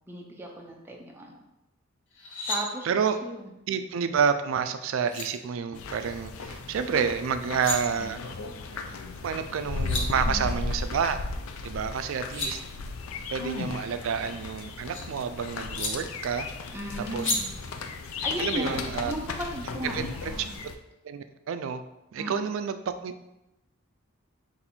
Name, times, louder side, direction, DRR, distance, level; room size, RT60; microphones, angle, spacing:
voice 1, 0.1-1.4 2.5-2.9 3.2-3.5 10.3-10.5 16.7-17.6 18.1-20.5 22.2-22.5, right 1 dB, 10° right, -1 dB, 0.4 m, -36 dB
sound 1, 2.1-2.6 4.6-4.7 5.1-5.3 7.3-7.8 9.4-9.5 9.7-10.0 12.0-12.5 14.0-15.0 15.8-15.9 17.2-17.4, left 2 dB, 60° left, 0.9 m, -32 dB
voice 2, 2.8-3.2 3.7-8.2 9.2-11.2 11.6-12.6 13.3-16.5 17.0-17.3 18.4-19.1 19.9-20.5 21.0-21.8 22.1-23.4, right 6 dB, 70° right, 9 dB, 0.3 m, -29 dB
sound 2, 5.7-20.8, left 3 dB, 85° left, 0.4 m, -35 dB
4.1 x 2.6 x 4.2 m, 0.91 s
head